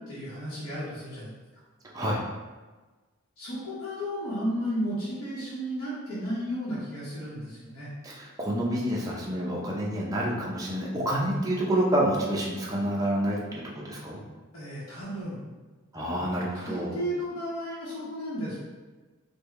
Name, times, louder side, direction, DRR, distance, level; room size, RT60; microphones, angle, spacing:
voice 1, 0.1-1.3 3.4-7.9 14.5-15.4 16.5-18.6, equal, 85° left, -9 dB, 1.1 m, -33 dB
voice 2, 8.0-14.2 15.9-17.0, right 1 dB, 15° right, -4 dB, 0.5 m, -28 dB
3.5 x 2.3 x 3.1 m, 1.3 s
head